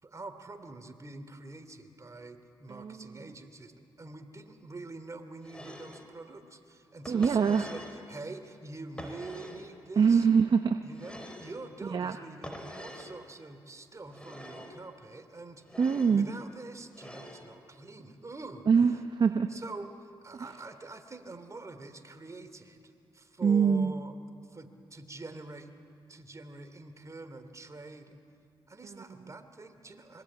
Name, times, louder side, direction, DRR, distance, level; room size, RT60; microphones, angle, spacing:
voice 1, 0.0-10.3 10.8-15.8 16.1-18.7 19.5-24.1 24.5-25.7 26.1-28.2 28.7-30.2, right 2 dB, 30° right, 8 dB, 2.9 m, -45 dB
voice 2, 2.7-3.1 7.1-7.7 10.0-10.8 11.8-12.1 15.8-16.3 18.7-19.5 20.3-20.5 23.4-23.9, right 6 dB, 50° right, 8 dB, 0.9 m, -24 dB
sound 1, 5.4-6.1 7.1-8.0 9.0-9.7 10.9-11.6 12.4-13.1 14.1-14.8 15.6-16.2 16.9-17.5, equal, 10° left, 5.1 m, -45 dB
25.0 x 23.0 x 8.7 m, 2.4 s
supercardioid pair, 55°, 10 cm